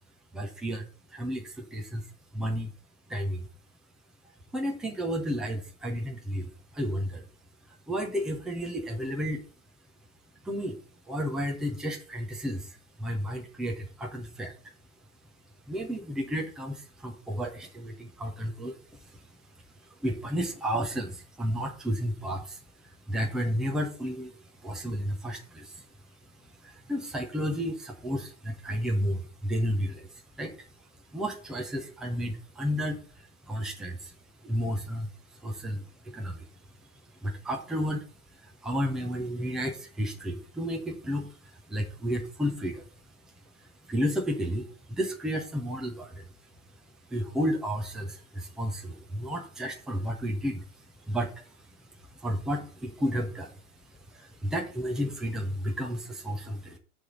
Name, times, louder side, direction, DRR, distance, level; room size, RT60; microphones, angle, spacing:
voice 1, 0.3-2.1 2.3-2.7 3.1-3.5 4.5-7.2 7.9-9.4 10.4-14.5 15.7-19.2 20.0-24.3 24.6-25.9 26.6-30.1 30.4-30.5 31.1-34.1 34.4-36.5 37.2-38.0 38.4-42.9 43.6-46.3 47.1-50.6 51.1-51.5 52.2-53.6 54.1-56.8, equal, ahead, 1 dB, 0.5 m, -32 dB
9.7 x 3.5 x 7.1 m, 0.40 s
supercardioid pair, 160°, 43 cm